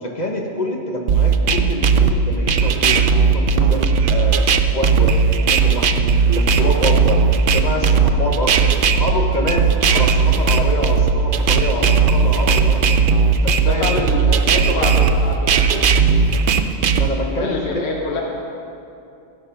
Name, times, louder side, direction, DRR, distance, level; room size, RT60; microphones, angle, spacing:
voice 1, 0.0-3.8 4.1-4.5 4.7-7.2 7.5-13.0 13.4-14.9 16.9-18.2, left 1 dB, 40° left, 1 dB, 1.1 m, -26 dB
sound 1, 1.1-17.1, right 5 dB, 60° right, 0.7 m, -16 dB
voice 2, 13.6-15.9 17.4-18.2, left 3 dB, 75° left, 0 dB, 1.2 m, -26 dB
15.0 x 6.0 x 5.8 m, 2.6 s
omnidirectional pair, 1.2 m